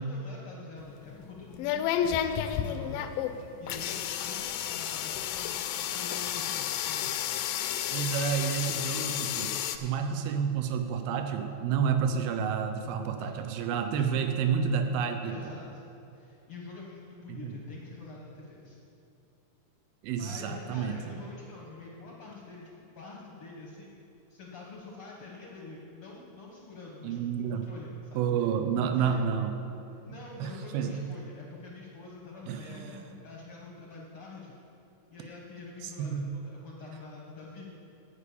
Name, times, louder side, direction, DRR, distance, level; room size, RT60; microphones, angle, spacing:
voice 1, 0.0-3.1 3.4-7.2 13.2-14.3 15.2-15.8 16.1-18.9 20.2-24.0 24.3-28.3 28.7-29.2 30.1-34.6 35.1-37.7, left 3 dB, 65° left, -2 dB, 1.4 m, -46 dB
sound 1, 0.8-9.8, left 10 dB, 80° left, 2.1 m, -32 dB
voice 2, 7.9-15.4 17.3-17.6 20.0-21.0 27.0-27.7 28.1-29.5 30.4-31.0 32.5-33.0 35.8-36.3, right 7 dB, 85° right, 6 dB, 2.6 m, -30 dB
12.0 x 5.1 x 8.4 m, 2.8 s
omnidirectional pair, 4.2 m